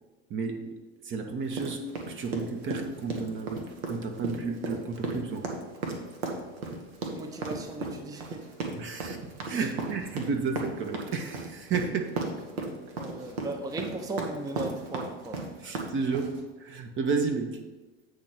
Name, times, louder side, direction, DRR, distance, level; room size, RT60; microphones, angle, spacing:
voice 1, 0.3-5.5 8.7-12.2 15.3-17.6, right 4 dB, 40° right, 4 dB, 0.9 m, -32 dB
sound 1, 1.5-16.4, right 3 dB, 75° right, 1.3 m, -35 dB
voice 2, 7.1-8.5 9.5-9.7 13.0-15.4, right 2 dB, 10° right, 5 dB, 0.6 m, -37 dB
8.2 x 3.1 x 6.4 m, 1.2 s
hypercardioid pair, 80°, 31 cm